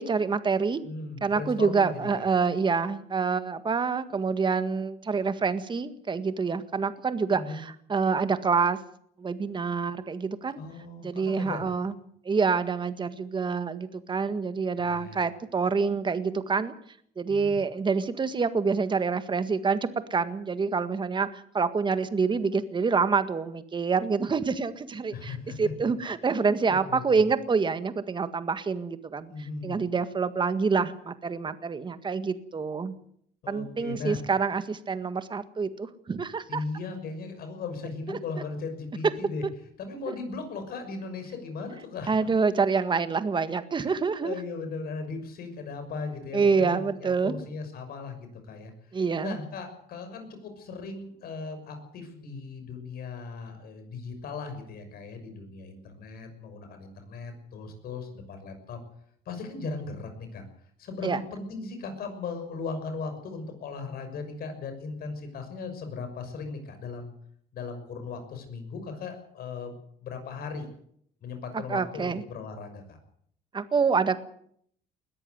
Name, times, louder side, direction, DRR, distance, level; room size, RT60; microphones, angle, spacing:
voice 1, 0.0-0.8 1.2-8.8 9.2-10.6 11.0-11.9 12.3-16.7 17.2-19.8 20.1-29.3 29.6-32.9 33.5-36.6 38.1-38.2 40.1-40.2 42.1-44.4 46.3-47.4 48.9-49.4 61.0-61.2 71.5-72.2 73.5-74.2, right 5 dB, 30° right, 11 dB, 1.7 m, -27 dB
voice 2, 0.8-2.3 7.3-7.6 10.6-11.6 14.8-15.2 17.3-17.6 25.1-25.6 26.9-27.0 29.3-29.8 33.4-34.2 36.5-39.4 39.8-42.3 43.8-43.9 44.2-48.7 49.2-58.8 59.3-60.4 60.8-67.1 67.5-70.7 71.2-73.0, left 4 dB, 65° left, 7 dB, 6.3 m, -37 dB
21.0 x 13.5 x 9.6 m, 0.67 s
cardioid pair, 110°, 17 cm